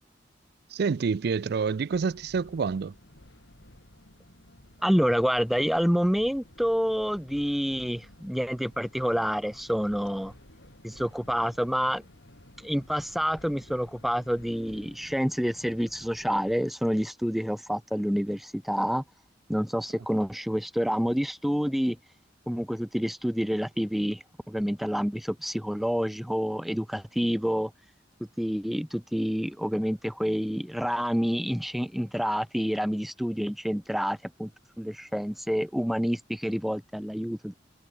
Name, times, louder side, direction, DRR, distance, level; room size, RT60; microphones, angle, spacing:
voice 1, 0.7-3.0, right 5 dB, 60° right, 0.4 m, -27 dB
sound 1, 1.9-16.5, left 1 dB, 70° left, 4.5 m, -53 dB
voice 2, 4.8-10.3 10.8-12.0 12.6-19.0 19.5-22.0 22.5-27.7 28.4-34.5 34.8-37.5, equal, ahead, 0.4 m, -28 dB
head